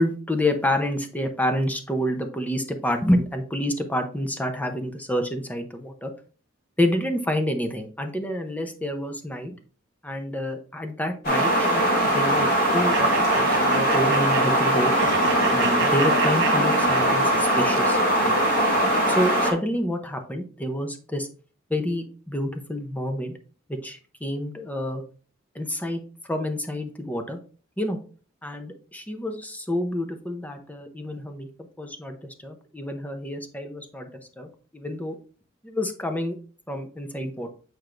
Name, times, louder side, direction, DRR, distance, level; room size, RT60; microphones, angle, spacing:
voice 1, 0.0-6.1 6.8-9.5 10.0-14.9 15.5-18.4 19.1-21.3 21.7-23.3 23.7-25.0 25.5-27.4 27.8-28.0 28.4-31.5 31.8-34.1 34.4-35.2 35.6-36.4 36.7-37.5, left 1 dB, 10° left, 5 dB, 0.7 m, -28 dB
sound 1, 11.2-19.5, right 1 dB, 55° left, 2.6 m, -21 dB
sound 2, 12.9-17.5, right 5 dB, 60° right, 0.7 m, -31 dB
8.6 x 4.6 x 2.5 m, 0.40 s
head